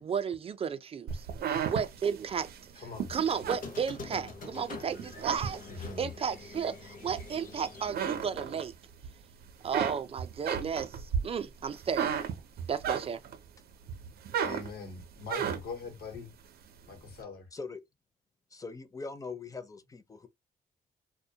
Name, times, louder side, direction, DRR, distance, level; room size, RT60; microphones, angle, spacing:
voice 1, 0.0-1.3 1.6-2.8 3.1-5.7 6.0-8.7 9.6-12.2 12.7-13.2, right 7 dB, 40° right, 0.4 m, -33 dB
sound 1, 1.1-4.5 4.9-6.0 6.5-7.5 7.8-9.1 9.4-13.5 13.9-15.9, right 8 dB, 90° right, 0.5 m, -34 dB
voice 2, 2.8-3.1 5.7-6.1 14.4-16.3 16.9-17.5, left 4 dB, 85° left, 0.9 m, -42 dB
Squeak, 3.2-8.6, left 4 dB, 60° left, 0.6 m, -46 dB
voice 3, 18.5-20.3, left 4 dB, 20° left, 0.4 m, -41 dB
2.1 x 2.1 x 2.7 m
cardioid pair, 105°, 16 cm